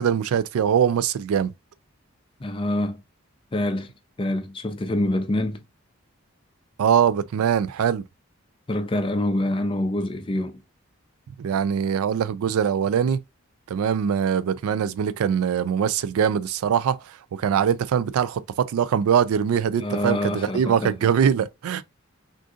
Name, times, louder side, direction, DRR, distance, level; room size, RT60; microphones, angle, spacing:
voice 1, 0.0-1.5 6.8-8.0 11.4-13.2 13.7-17.0 17.4-21.8, right 8 dB, 85° right, 0.3 m, -22 dB
voice 2, 2.4-3.0 3.5-3.9 4.2-5.6 8.7-10.6 19.8-21.0, left 1 dB, 25° left, 0.4 m, -26 dB
3.6 x 2.5 x 2.4 m
head